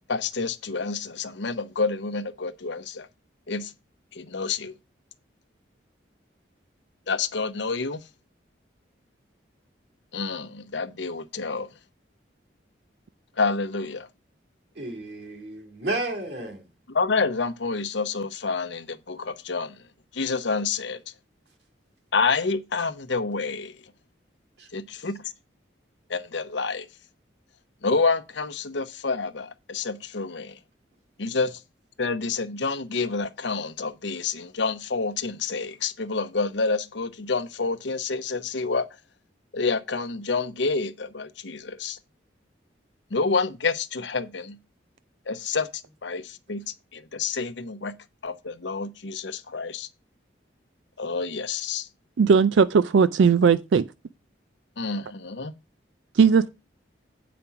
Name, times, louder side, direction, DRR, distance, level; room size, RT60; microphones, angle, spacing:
voice 1, 0.1-3.1 3.5-3.7 4.1-4.7 7.1-8.0 10.1-11.7 13.4-14.1 16.9-19.8 20.1-21.0 22.1-23.8 24.7-25.2 26.1-26.9 27.8-30.6 31.2-31.6 32.0-38.9 39.5-42.0 43.1-44.6 45.3-45.7 46.0-46.6 46.9-47.9 48.2-49.9 51.0-51.9 54.8-55.5, left 4 dB, 70° left, 0.8 m, -28 dB
voice 2, 14.8-16.7 24.6-24.7 31.3-31.4, right 2 dB, 60° right, 2.3 m, -32 dB
voice 3, 52.2-53.8 56.1-56.5, right 6 dB, 80° right, 0.4 m, -18 dB
8.4 x 5.1 x 5.7 m
head